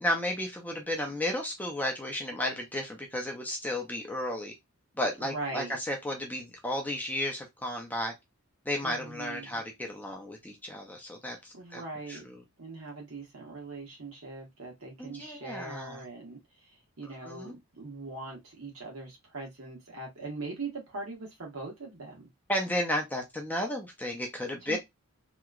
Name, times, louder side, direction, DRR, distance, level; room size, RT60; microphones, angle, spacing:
voice 1, 0.0-4.5 5.0-8.1 8.7-11.8 12.1-12.4 15.0-16.0 17.0-17.6 22.5-24.8, left 1 dB, 10° left, 0.5 m, -33 dB
voice 2, 5.2-5.8 8.8-9.5 11.5-12.3 12.6-16.4 17.0-22.3 24.7-24.8, right 3 dB, 70° right, 1.2 m, -41 dB
2.9 x 2.2 x 2.3 m
head